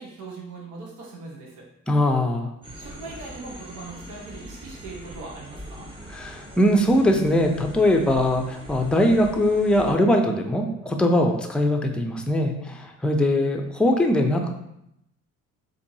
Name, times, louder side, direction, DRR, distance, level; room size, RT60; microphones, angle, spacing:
voice 1, 0.0-1.6 2.7-5.9, right 3 dB, 80° right, -2 dB, 0.9 m, -40 dB
voice 2, 1.9-2.5 6.1-14.5, left 1 dB, 5° left, 3 dB, 0.4 m, -21 dB
sound 1, 2.6-9.9, equal, 15° right, 0.9 m, -42 dB
4.4 x 2.6 x 2.7 m, 0.80 s
cardioid pair, 90°, 30 cm